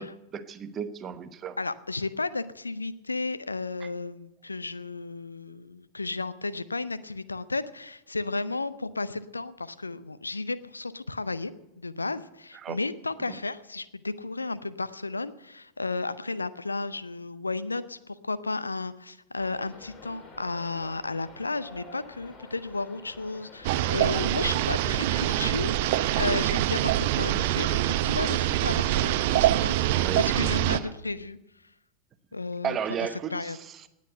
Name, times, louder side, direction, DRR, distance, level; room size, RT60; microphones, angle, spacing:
voice 1, 0.0-1.6 3.8-3.9 12.6-12.8 13.3-13.4 30.0-30.3 30.7-30.9 32.6-33.9, right 7 dB, 25° right, 11 dB, 1.1 m, -34 dB
voice 2, 1.6-31.4 32.3-32.8 33.3-33.6, left 3 dB, 80° left, 15 dB, 0.6 m, -33 dB
sound 1, 19.4-25.8, left 2 dB, 30° left, 2.9 m, -49 dB
sound 2, 23.6-30.8, right 14 dB, 50° right, 0.7 m, -25 dB
18.5 x 8.4 x 7.9 m, 0.90 s
figure-of-eight pair, 90°, 0 cm